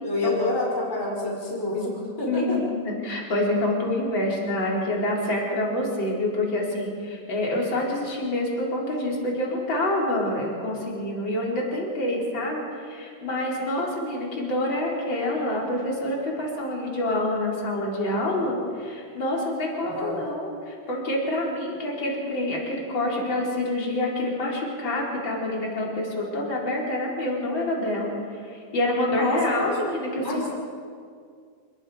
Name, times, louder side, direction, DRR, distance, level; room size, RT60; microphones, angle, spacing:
voice 1, 0.0-2.6 19.8-20.2 29.1-29.7 30.2-30.5, left 2 dB, 5° left, -3 dB, 4.9 m, -28 dB
voice 2, 2.2-28.1 28.7-30.5, left 1 dB, 30° left, -3 dB, 4.8 m, -27 dB
29.0 x 20.5 x 5.1 m, 2.1 s
omnidirectional pair, 4.6 m